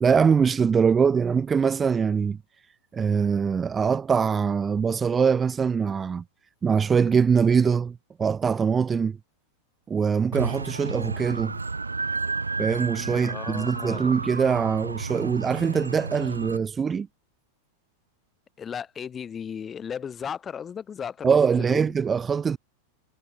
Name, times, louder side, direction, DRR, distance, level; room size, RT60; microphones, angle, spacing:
voice 1, 0.0-2.4 2.9-6.2 6.6-9.2 9.9-11.6 12.6-17.1 21.2-22.6, right 6 dB, 20° right, 0.4 m, -23 dB
sound 1, 10.3-16.6, right 4 dB, 80° right, 1.6 m, -32 dB
voice 2, 13.2-14.1 18.6-21.9, left 7 dB, 20° left, 1.0 m, -35 dB
figure-of-eight pair, 90°, 0 cm